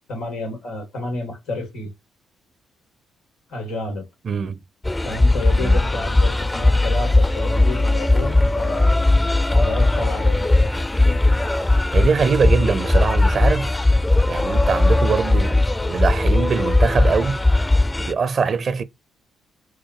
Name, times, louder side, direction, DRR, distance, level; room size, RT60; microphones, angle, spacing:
voice 1, 0.1-1.9 3.5-4.0 5.0-8.9 9.5-10.5, left 2 dB, 90° left, 2.3 m, -30 dB
voice 2, 4.2-4.6 5.6-5.8 11.9-13.7 14.3-17.4 18.0-18.8, right 5 dB, 50° right, 0.5 m, -22 dB
sound 1, 4.8-18.1, left 2 dB, 20° left, 0.4 m, -18 dB
4.5 x 2.1 x 4.6 m
hypercardioid pair, 50°, 0 cm